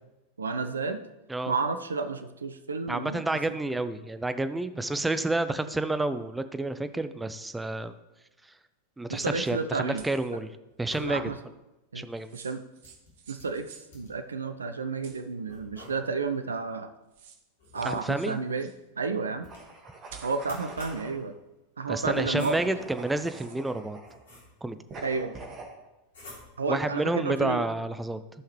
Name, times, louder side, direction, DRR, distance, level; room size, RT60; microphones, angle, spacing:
voice 1, 0.4-1.0 1.5-3.2 9.1-10.0 11.0-11.4 11.9-12.0 12.3-12.6 13.3-13.7 13.9-16.9 17.7-19.5 20.2-21.4 21.8-22.6 25.0-25.3 26.6-27.7, right 4 dB, 75° right, 9 dB, 0.5 m, -31 dB
voice 2, 2.9-7.9 9.0-10.5 10.8-11.2 11.9-12.4 17.8-18.4 21.9-24.0 24.6-24.8 26.7-28.2, right 2 dB, 5° right, 11 dB, 0.5 m, -29 dB
sound 1, 9.0-9.7 10.7-11.4 12.8-14.3 15.5-16.4 17.6-18.4 19.4-19.9 20.4-21.2 22.1-22.9 23.6-24.8 26.1-26.8, left 1 dB, 60° left, 3.1 m, -50 dB
sound 2, 10.0-10.4 12.1-13.9 15.0-15.8 16.8-16.9 17.1-18.8 20.1-20.6 22.9-23.6, right 7 dB, 55° right, 1.0 m, -51 dB
sound 3, 19.4-21.2 22.0-24.2 24.9-25.7, right 3 dB, 25° right, 1.9 m, -43 dB
14.0 x 5.7 x 3.2 m, 1.0 s
figure-of-eight pair, 90°, 0 cm